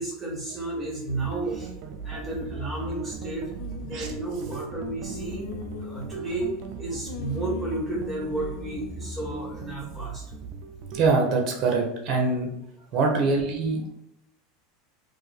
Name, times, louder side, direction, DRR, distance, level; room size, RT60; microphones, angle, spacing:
voice 1, 0.0-1.7 2.0-3.5 3.8-5.5 5.8-10.2, right 2 dB, 5° right, -6 dB, 1.5 m, -32 dB
sound 1, 1.1-11.0, right 3 dB, 55° right, 0.4 m, -38 dB
sound 2, 3.6-4.2 4.8-6.7 7.1-9.6, left 8 dB, 75° left, 0.3 m, -40 dB
voice 2, 10.9-12.5 12.9-13.9, right 3 dB, 40° right, 2 dB, 0.8 m, -24 dB
2.6 x 2.5 x 4.0 m, 0.82 s
supercardioid pair, 130°, 0 cm